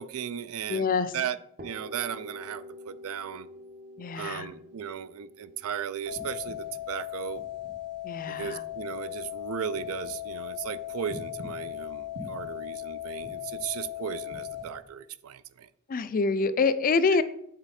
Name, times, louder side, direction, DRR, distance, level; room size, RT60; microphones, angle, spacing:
voice 1, 0.0-1.4 1.6-3.5 4.1-7.4 8.3-15.7 17.1-17.2, right 8 dB, 65° right, 15 dB, 0.4 m, -36 dB
voice 2, 0.7-1.1 4.0-4.5 8.0-8.6 15.9-17.2, left 4 dB, 40° left, 13 dB, 0.4 m, -26 dB
sound 1, 1.6-9.3, left 1 dB, 40° right, 0.8 m, -48 dB
sound 2, 6.1-14.6, left 11 dB, 90° right, 1.9 m, -37 dB
7.8 x 4.0 x 4.2 m, 0.73 s
head